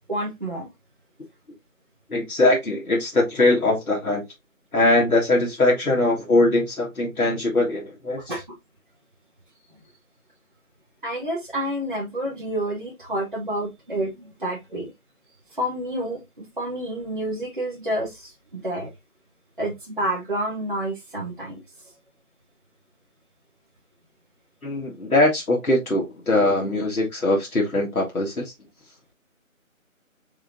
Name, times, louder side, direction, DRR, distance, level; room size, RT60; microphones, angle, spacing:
voice 1, 0.1-0.7 8.3-8.6 11.0-14.9 15.5-18.9 19.6-21.6, right 1 dB, 35° right, 1.0 m, -29 dB
voice 2, 2.1-4.3 4.7-8.2 24.6-28.5, left 2 dB, 85° left, 1.7 m, -21 dB
4.2 x 3.8 x 2.5 m
figure-of-eight pair, 175°, 42 cm